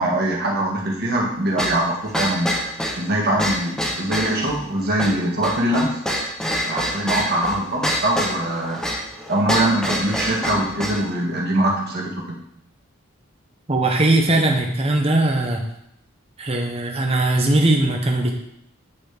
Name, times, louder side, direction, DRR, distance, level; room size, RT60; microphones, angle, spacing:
voice 1, 0.0-2.5 3.0-5.9 6.7-8.9 9.3-12.4, right 1 dB, 50° right, -2 dB, 1.4 m, -22 dB
sound 1, 1.6-11.1, equal, 5° left, 0.8 m, -26 dB
voice 2, 13.7-15.6 16.4-18.4, right 2 dB, 30° right, 2 dB, 0.9 m, -19 dB
8.7 x 4.1 x 3.4 m, 0.75 s
head